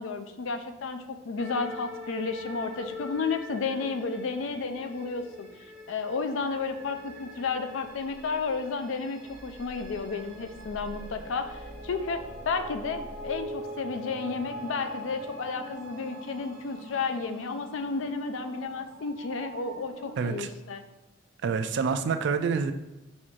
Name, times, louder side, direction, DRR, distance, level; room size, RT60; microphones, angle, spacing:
voice 1, 0.0-5.5 5.9-20.8, left 4 dB, 70° left, 8 dB, 0.4 m, -32 dB
sound 1, 1.4-20.4, equal, 15° right, 1.2 m, -43 dB
voice 2, 20.2-20.5 21.4-22.7, right 5 dB, 60° right, 8 dB, 0.3 m, -27 dB
4.1 x 2.5 x 4.5 m, 0.97 s
head